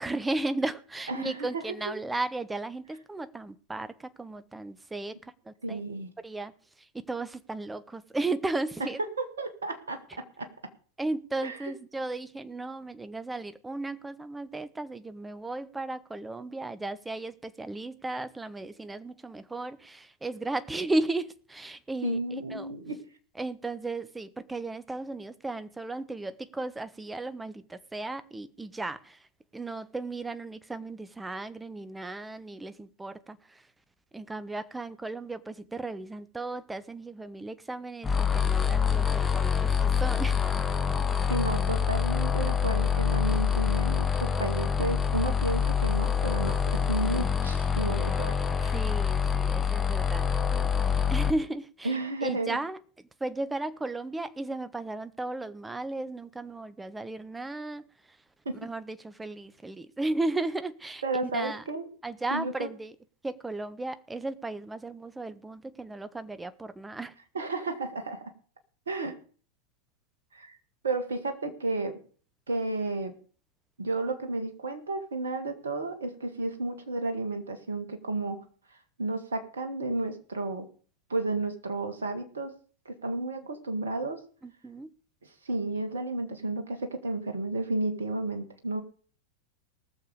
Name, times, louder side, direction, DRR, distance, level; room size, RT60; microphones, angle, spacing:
voice 1, 0.0-5.8 6.2-9.0 11.0-22.7 23.4-29.3 29.5-33.7 34.1-40.4 48.7-50.3 50.8-52.8 53.2-58.2 58.5-61.0 61.3-61.6 62.0-62.9 63.2-67.1 84.4-84.9, right 2 dB, 10° right, 0.8 m, -35 dB
voice 2, 1.1-1.8 5.6-6.1 9.2-10.5 11.4-11.7 22.0-23.0 41.3-48.8 51.8-52.6 58.5-58.7 61.0-61.9 62.3-62.7 67.3-68.3 68.9-69.2 70.3-70.6 70.8-72.0 72.5-73.2 73.8-78.4 79.0-80.7 81.1-82.5 82.9-84.2 85.5-88.8, right 2 dB, 70° right, 1.9 m, -32 dB
sound 1, 38.0-51.3, left 7 dB, 15° left, 1.1 m, -26 dB
19.5 x 6.9 x 5.1 m
figure-of-eight pair, 90°, 0 cm